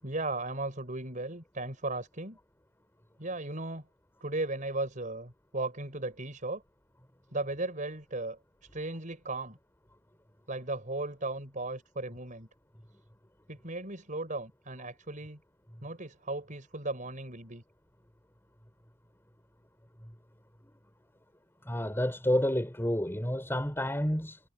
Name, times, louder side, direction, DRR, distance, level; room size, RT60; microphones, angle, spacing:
voice 1, 0.0-2.4 3.2-3.9 4.2-6.6 7.3-9.6 10.5-12.5 13.5-15.4 15.8-17.6, right 2 dB, 40° right, 5.9 m, -36 dB
voice 2, 21.6-24.4, equal, 10° left, 4.8 m, -29 dB
head